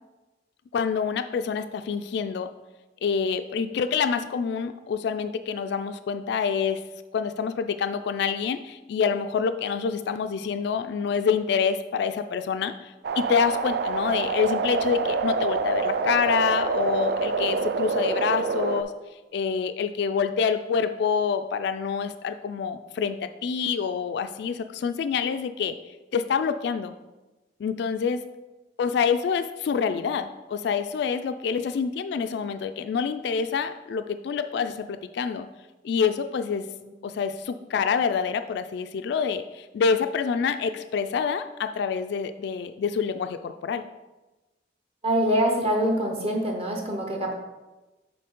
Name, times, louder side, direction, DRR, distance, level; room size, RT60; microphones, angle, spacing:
voice 1, 0.7-2.5 3.0-6.8 7.1-18.9 19.3-25.8 26.1-26.9 27.6-28.2 28.8-35.5 35.8-36.6 37.0-43.8, left 6 dB, 65° left, 10 dB, 0.3 m, -27 dB
sound 1, 13.0-18.8, right 5 dB, 60° right, 0.3 m, -26 dB
voice 2, 45.0-47.3, equal, 35° right, 1 dB, 0.9 m, -24 dB
6.7 x 4.3 x 3.7 m, 1.1 s
head